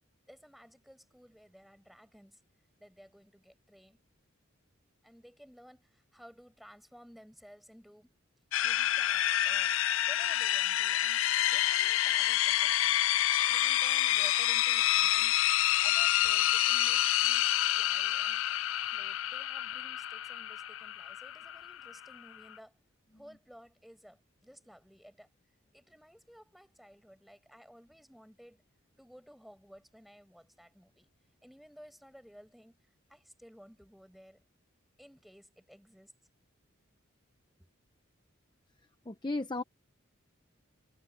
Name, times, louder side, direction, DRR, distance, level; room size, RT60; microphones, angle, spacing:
voice 1, 0.3-2.4 2.8-4.0 5.0-8.1 8.6-9.8 10.1-11.2 11.5-13.0 13.5-15.4 15.8-18.4 18.9-22.8 23.1-25.3 25.7-28.6 29.0-31.1 31.4-32.8 33.1-34.4 35.0-36.1 37.6-37.7, equal, ahead, 6.1 m, -56 dB
sound 1, 8.5-22.5, left 13 dB, 70° left, 0.4 m, -28 dB
voice 2, 39.1-39.6, left 2 dB, 20° left, 0.8 m, -34 dB
head